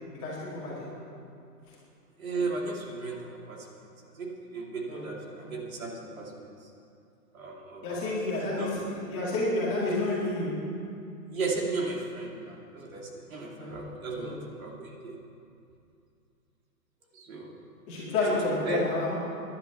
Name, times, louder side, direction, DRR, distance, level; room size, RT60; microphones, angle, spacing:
voice 1, 0.2-0.9 4.9-5.0 5.4-5.5 7.8-10.5 13.6-13.7 14.2-14.3 17.9-19.2, left 2 dB, 15° left, -7 dB, 2.1 m, -30 dB
voice 2, 2.2-3.8 4.1-6.5 7.3-8.2 8.5-8.7 11.3-15.1 17.1-17.6 18.3-18.9, right 3 dB, 55° right, -1 dB, 2.6 m, -35 dB
11.0 x 10.5 x 8.3 m, 2.5 s
hypercardioid pair, 170°, 49 cm